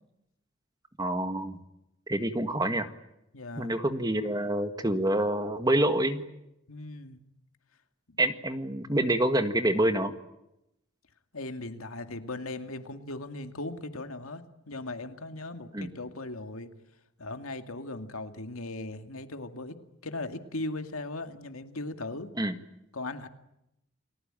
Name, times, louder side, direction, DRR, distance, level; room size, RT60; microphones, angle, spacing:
voice 1, 1.0-1.6 2.1-2.9 3.6-6.2 8.2-10.1 15.7-15.9 22.4-22.5, right 1 dB, 20° right, 9 dB, 1.7 m, -27 dB
voice 2, 3.3-3.7 6.7-7.2 11.3-16.7 17.2-19.8 20.0-22.3 22.9-23.3, left 2 dB, 90° left, 7 dB, 2.3 m, -38 dB
30.0 x 20.0 x 9.0 m, 0.86 s
head